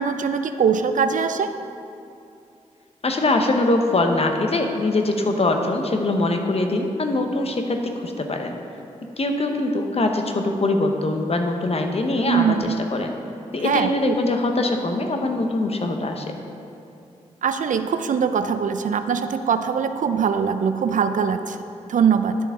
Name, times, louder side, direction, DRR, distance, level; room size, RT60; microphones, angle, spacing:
voice 1, 0.0-1.5 12.3-12.8 13.6-14.2 17.4-22.4, right 6 dB, 65° right, 9 dB, 0.5 m, -22 dB
voice 2, 3.0-8.6 9.2-13.1 13.5-16.3, left 2 dB, 45° left, 4 dB, 1.1 m, -22 dB
11.0 x 6.7 x 3.8 m, 2.6 s
supercardioid pair, 40°, 14 cm